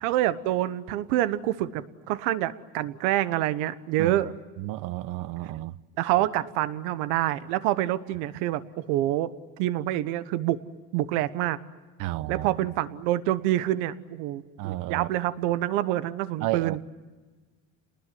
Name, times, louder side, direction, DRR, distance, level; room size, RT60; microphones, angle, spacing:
voice 1, 0.0-4.3 6.0-9.3 9.6-10.6 10.9-11.6 12.3-16.8, right 14 dB, 85° right, 1.2 m, -27 dB
voice 2, 4.6-5.8 6.2-6.3 12.0-12.7 14.6-15.1 16.4-16.9, right 16 dB, 65° right, 0.9 m, -32 dB
30.0 x 20.0 x 9.6 m
supercardioid pair, 105°, 35 cm